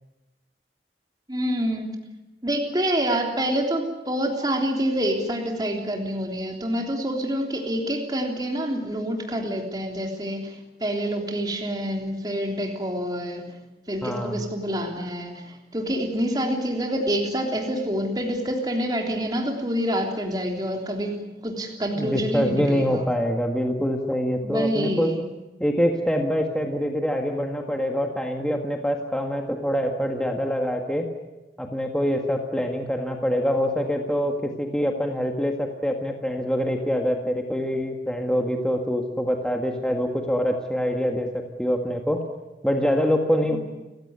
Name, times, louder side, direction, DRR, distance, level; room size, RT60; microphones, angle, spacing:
voice 1, 1.3-1.9 2.4-13.5 13.9-21.2 21.4-23.1 24.4-25.3 43.5-43.6, equal, 20° right, 2 dB, 3.4 m, -27 dB
voice 2, 14.0-14.4 22.0-25.1 25.6-31.1 31.6-42.2 42.6-43.6, equal, 5° left, 2 dB, 1.8 m, -25 dB
30.0 x 16.0 x 9.7 m, 1.0 s
head